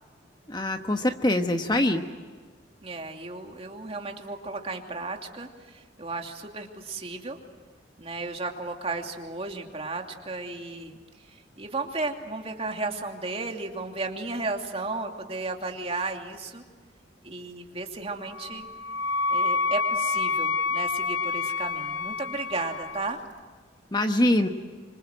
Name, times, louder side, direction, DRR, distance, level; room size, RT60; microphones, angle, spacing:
voice 1, 0.5-2.0 23.9-24.5, left 1 dB, 25° left, 6 dB, 1.2 m, -23 dB
voice 2, 2.8-7.4 8.0-11.0 11.3-16.6 17.2-18.7 19.3-23.2, right 3 dB, 30° right, 3 dB, 2.7 m, -34 dB
Wind instrument woodwind instrument, 18.3-23.1, left 4 dB, 70° left, 0.8 m, -28 dB
27.0 x 26.0 x 7.9 m, 1.5 s
head